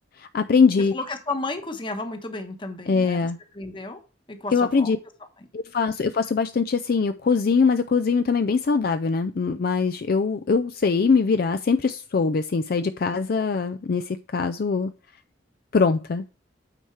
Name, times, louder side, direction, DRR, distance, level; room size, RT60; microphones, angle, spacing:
voice 1, 0.2-0.9 2.9-3.4 4.5-5.0 5.5-14.9 15.7-16.4, left 5 dB, 55° left, 0.4 m, -22 dB
voice 2, 0.9-3.3 3.5-4.0 4.3-5.0, left 2 dB, 25° left, 1.1 m, -32 dB
8.9 x 4.4 x 4.7 m
head